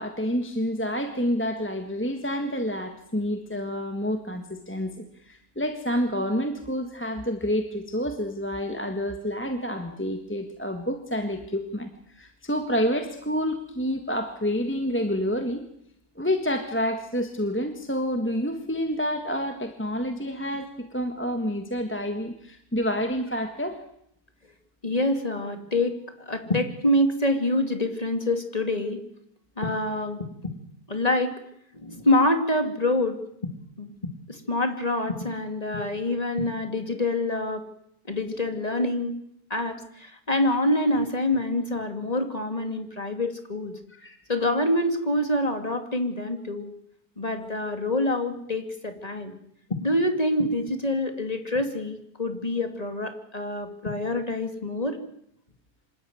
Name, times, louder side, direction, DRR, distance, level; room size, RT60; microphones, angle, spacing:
voice 1, 0.0-11.9 12.1-15.6 16.1-23.8 43.9-44.2, equal, 10° left, 5 dB, 1.6 m, -28 dB
voice 2, 24.8-25.9 26.3-29.0 29.6-30.5 30.9-31.3 31.7-33.2 33.8-33.9 34.3-37.6 38.1-39.2 39.5-43.7 44.3-46.7 47.2-49.3 49.7-55.0, left 1 dB, 25° left, 6 dB, 2.6 m, -26 dB
26.5 x 13.0 x 9.4 m, 0.74 s
omnidirectional pair, 1.6 m